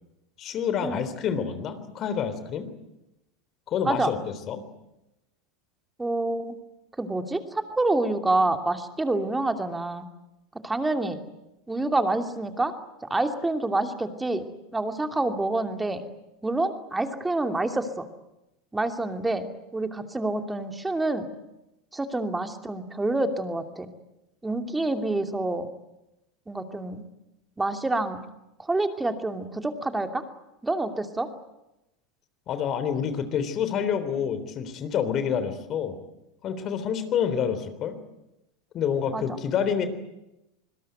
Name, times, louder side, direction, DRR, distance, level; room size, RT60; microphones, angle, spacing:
voice 1, 0.4-2.7 3.7-4.2 4.5-4.6 32.5-36.0 36.4-37.9 38.7-39.9, left 7 dB, 40° left, 10 dB, 3.5 m, -28 dB
voice 2, 6.0-6.6 7.0-10.1 10.6-11.2 11.7-12.7 13.0-14.5 14.7-16.0 16.4-18.1 18.7-21.3 21.9-23.9 24.4-25.7 26.5-27.0 27.6-28.2 28.6-30.2 30.6-31.3 39.1-39.2, right 2 dB, 10° right, 6 dB, 2.8 m, -27 dB
26.0 x 21.0 x 9.3 m, 0.93 s
hypercardioid pair, 85°, 0 cm